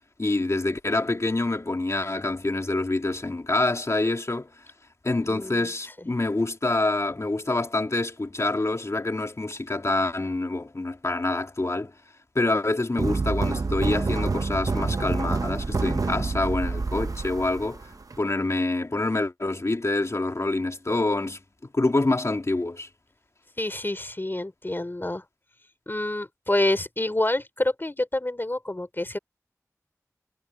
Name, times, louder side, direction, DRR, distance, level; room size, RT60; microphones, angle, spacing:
voice 1, 0.2-4.5 5.0-11.9 12.3-17.8 18.2-21.4 21.7-22.9, left 2 dB, 55° left, 2.6 m, -26 dB
voice 2, 5.3-5.7 6.0-6.1 23.6-25.2 25.9-29.2, left 1 dB, 35° left, 3.2 m, -27 dB
sound 1, 13.0-18.2, right 3 dB, 75° right, 0.8 m, -27 dB
wide cardioid pair, 45°, 6 cm